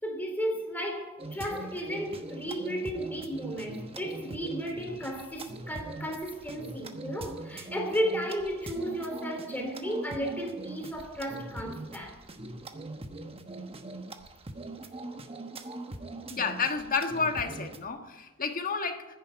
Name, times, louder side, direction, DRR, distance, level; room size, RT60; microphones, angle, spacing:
voice 1, 0.0-12.2, equal, 10° left, 2.9 m, -34 dB
sound 1, 1.2-17.9, right 2 dB, 25° right, 1.1 m, -42 dB
voice 2, 16.3-19.1, left 4 dB, 40° left, 1.5 m, -30 dB
10.5 x 9.9 x 9.9 m
head